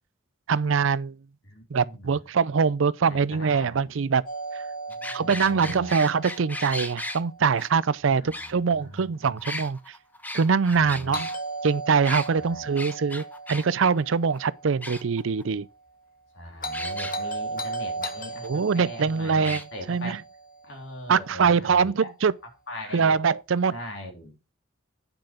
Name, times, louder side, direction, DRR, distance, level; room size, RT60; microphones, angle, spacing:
voice 1, 0.5-1.2 1.7-4.2 5.1-9.8 10.3-11.3 11.6-15.7 18.4-19.6 19.9-20.2 21.1-22.3 22.9-23.7, right 5 dB, 80° right, 0.5 m, -23 dB
voice 2, 1.4-2.2 3.0-4.0 4.9-5.9 8.1-9.4 10.7-11.2 12.4-12.7 16.3-20.2 20.6-22.1 22.7-23.2 23.7-24.4, equal, 65° left, 3.2 m, -41 dB
Doorbell, 4.3-8.2 11.1-15.3 16.6-21.0, right 2 dB, 45° left, 1.8 m, -37 dB
sound 1, 4.9-7.2 7.6-7.7 8.3-9.0 9.4-11.3 12.0-12.3 12.8-13.6 14.0-14.1 14.3-14.4 14.8-15.4 16.7-17.1 18.0-18.1 18.4-18.5 19.4-19.6, left 1 dB, 10° left, 0.7 m, -36 dB
8.9 x 5.8 x 5.0 m
head